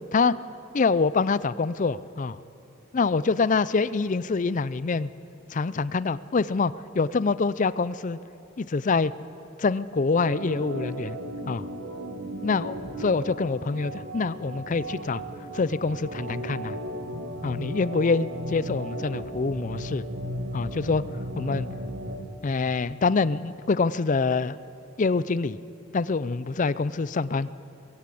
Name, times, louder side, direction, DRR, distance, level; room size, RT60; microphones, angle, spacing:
voice 1, 0.7-2.4 2.9-5.1 5.5-8.2 8.6-9.1 9.6-11.2 11.5-11.6 12.4-15.2 15.5-16.8 17.4-20.0 20.5-21.1 21.3-21.7 22.4-24.6 25.0-25.6 25.9-27.5, left 4 dB, 40° left, 18 dB, 0.5 m, -25 dB
Organ, 10.1-22.3, right 1 dB, 70° right, 1.9 m, -35 dB
22.0 x 16.0 x 8.5 m, 2.8 s
head